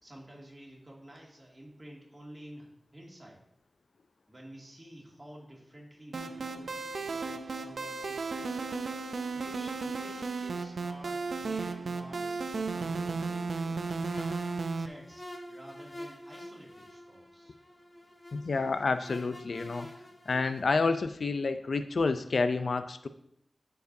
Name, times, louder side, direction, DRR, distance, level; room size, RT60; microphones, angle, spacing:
voice 1, 0.0-3.4 4.3-8.6 9.3-13.0 13.3-14.0 14.8-17.6, right 1 dB, 30° right, -2 dB, 2.1 m, -51 dB
sound 1, 6.1-14.9, right 4 dB, 90° right, 0.5 m, -34 dB
sound 2, 14.0-20.6, left 1 dB, 30° left, 1.2 m, -47 dB
voice 2, 18.3-19.9 20.3-23.1, left 4 dB, 80° left, 10 dB, 0.4 m, -29 dB
13.0 x 4.6 x 2.7 m, 0.73 s
wide cardioid pair, 70°, 0 cm